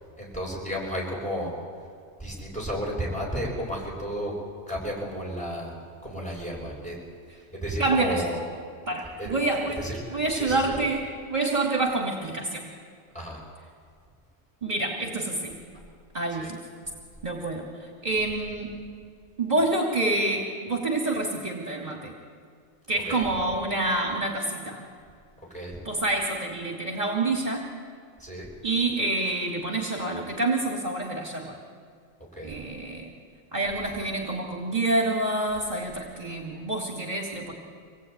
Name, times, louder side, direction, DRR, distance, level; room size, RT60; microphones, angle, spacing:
voice 1, 0.2-1.5 2.2-4.3 4.7-5.7 6.0-7.0 7.5-8.4 9.2-9.4 9.8-10.7 13.1-13.4 16.3-16.5 23.0-23.2 25.5-25.8 28.2-28.5 32.4-32.5, equal, 5° left, -4 dB, 7.8 m, -32 dB
voice 2, 7.8-8.2 8.9-12.7 14.6-15.6 16.1-16.6 17.2-18.8 19.4-22.1 22.9-24.8 25.8-27.7 28.6-31.6 32.4-33.1 33.5-37.5, right 2 dB, 35° right, 1 dB, 2.8 m, -27 dB
25.5 x 19.5 x 9.5 m, 2.2 s
omnidirectional pair, 1.3 m